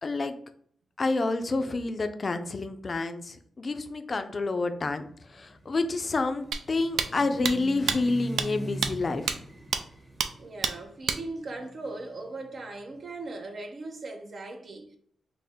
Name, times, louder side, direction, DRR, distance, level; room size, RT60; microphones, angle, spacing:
voice 1, 0.0-0.3 1.0-9.4, left 3 dB, 40° left, 0.4 m, -29 dB
sound 1, 5.1-13.0, right 1 dB, 20° right, 0.9 m, -43 dB
sound 2, 6.5-6.6 7.0-7.1 7.4-7.5 7.9-8.0 8.4-8.5 8.8-8.9 9.3-9.4 9.7-9.8 10.2-10.3 10.6-10.7 11.1-11.2, right 6 dB, 90° right, 0.3 m, -27 dB
voice 2, 10.3-15.0, right 2 dB, 55° right, 0.6 m, -39 dB
4.2 x 2.1 x 3.5 m
cardioid pair, 95°, 0 cm